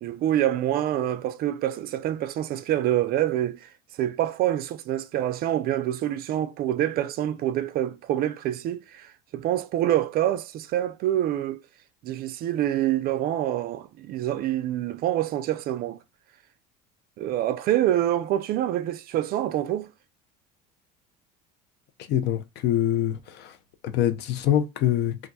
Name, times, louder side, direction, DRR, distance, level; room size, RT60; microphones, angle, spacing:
voice 1, 0.0-3.7 4.0-11.6 12.0-16.0 17.2-19.9, right 12 dB, 45° right, 0.4 m, -26 dB
voice 2, 22.1-23.6 23.8-25.3, left 11 dB, 55° left, 0.7 m, -25 dB
2.4 x 2.2 x 4.0 m
supercardioid pair, 110°, 21 cm